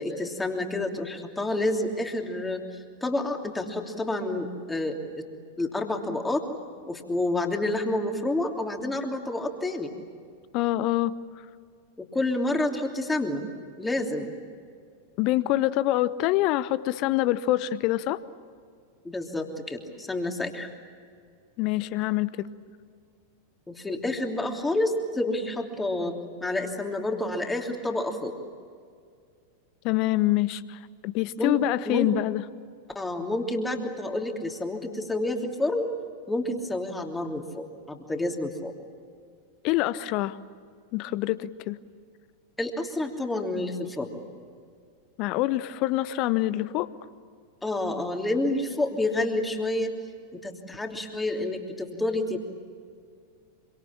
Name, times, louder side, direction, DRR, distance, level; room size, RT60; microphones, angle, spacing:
voice 1, 0.0-5.2 5.6-6.4 6.9-9.9 12.0-13.5 13.8-14.3 19.0-20.7 23.7-26.1 26.4-28.4 31.4-31.6 31.8-32.1 32.9-35.9 36.3-38.7 42.6-44.2 47.6-50.0 50.3-52.4, left 2 dB, 10° left, 3 dB, 3.0 m, -29 dB
voice 2, 10.5-11.1 15.2-18.2 21.6-22.5 29.8-32.4 39.6-40.4 40.9-41.8 45.2-46.9, left 16 dB, 40° left, 17 dB, 0.9 m, -25 dB
26.5 x 25.0 x 8.7 m, 2.1 s
figure-of-eight pair, 90°, 0 cm